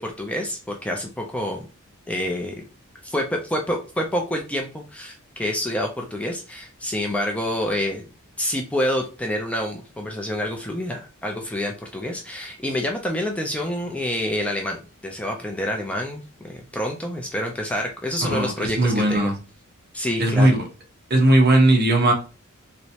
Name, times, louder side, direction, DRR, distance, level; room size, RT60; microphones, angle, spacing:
voice 1, 0.0-1.6 2.1-2.6 3.0-8.0 8.4-19.3 19.9-20.5, left 1 dB, 5° left, 1 dB, 0.4 m, -27 dB
voice 2, 18.2-19.4 20.2-20.6 21.1-22.1, right 1 dB, 45° right, 1 dB, 1.0 m, -18 dB
3.2 x 3.0 x 2.8 m, 0.34 s
head